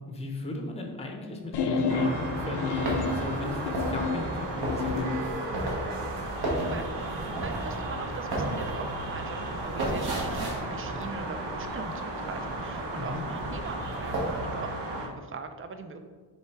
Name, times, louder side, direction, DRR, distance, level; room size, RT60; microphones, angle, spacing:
voice 1, 0.1-5.3 13.0-13.3, left 2 dB, 15° left, 2 dB, 0.6 m, -36 dB
sound 1, 1.5-5.3, left 4 dB, 75° left, 0.6 m, -30 dB
sound 2, 1.9-15.1, right 2 dB, 90° right, 0.9 m, -35 dB
sound 3, 2.7-11.9 12.2-13.3 13.6-14.4, right 1 dB, 65° right, 1.5 m, -34 dB
voice 2, 6.5-16.0, right 4 dB, 35° right, 7 dB, 0.4 m, -41 dB
6.3 x 3.3 x 4.6 m, 1.5 s
wide cardioid pair, 180°, 41 cm